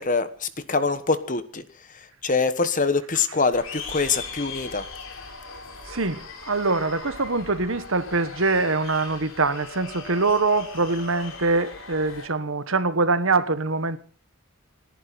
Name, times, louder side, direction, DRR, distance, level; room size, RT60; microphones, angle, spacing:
voice 1, 0.0-1.6 1.9-4.8, left 4 dB, 35° left, 1.2 m, -24 dB
sound 1, 3.5-12.3, left 4 dB, 60° left, 3.6 m, -39 dB
voice 2, 5.9-14.0, right 3 dB, 60° right, 1.3 m, -24 dB
29.0 x 10.5 x 4.2 m
head